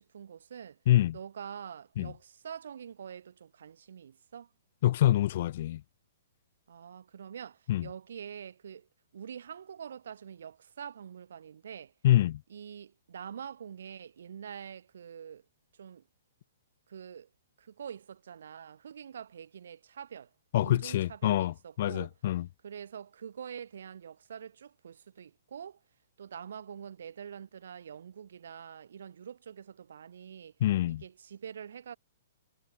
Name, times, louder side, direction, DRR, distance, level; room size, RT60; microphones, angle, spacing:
voice 1, 0.0-0.8 1.1-4.5 6.7-8.9 9.1-11.9 12.5-15.4 15.8-16.0 16.9-17.3 17.6-20.3 20.6-22.1 22.6-25.8 26.2-30.5 31.0-32.0, right 8 dB, 70° right, 2.9 m, -45 dB
voice 2, 0.9-1.2 2.0-2.1 4.8-5.8 7.7-7.9 12.0-12.4 20.5-22.5 30.6-31.0, left 13 dB, 55° left, 0.4 m, -26 dB
hypercardioid pair, 120°, 0 cm